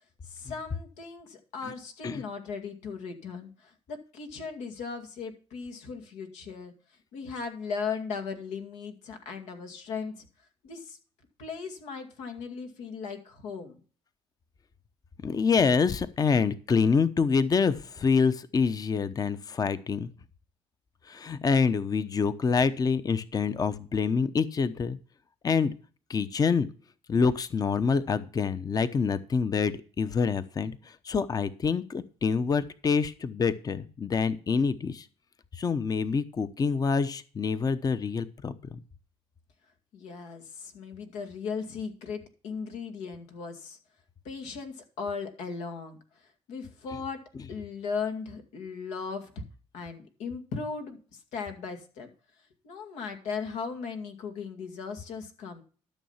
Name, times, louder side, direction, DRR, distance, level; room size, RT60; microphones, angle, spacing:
voice 1, 0.2-6.7 7.1-10.3 10.6-11.0 11.4-13.8 39.9-43.8 44.2-46.0 46.5-47.2 47.5-49.3 49.7-52.1 52.6-55.6, left 5 dB, 85° left, 6 dB, 2.3 m, -37 dB
voice 2, 15.2-20.1 21.1-25.0 25.4-25.7 26.1-26.7 27.1-30.7 31.0-35.0 35.5-38.8, left 5 dB, 35° left, 13 dB, 0.9 m, -26 dB
12.5 x 6.4 x 5.7 m, 0.40 s
cardioid pair, 100°, 11 cm